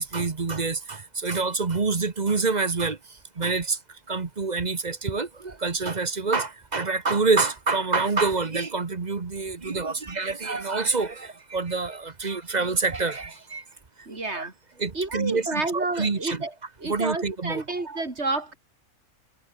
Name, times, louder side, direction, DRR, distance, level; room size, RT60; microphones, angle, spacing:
voice 1, 0.0-3.0 3.4-3.8 4.1-13.6 14.1-14.5 14.8-16.4 16.8-18.0, right 4 dB, 30° right, 1.2 m, -27 dB
voice 2, 14.1-14.5 14.9-16.5 16.8-18.5, right 3 dB, 50° right, 3.9 m, -30 dB
omnidirectional pair, 1.5 m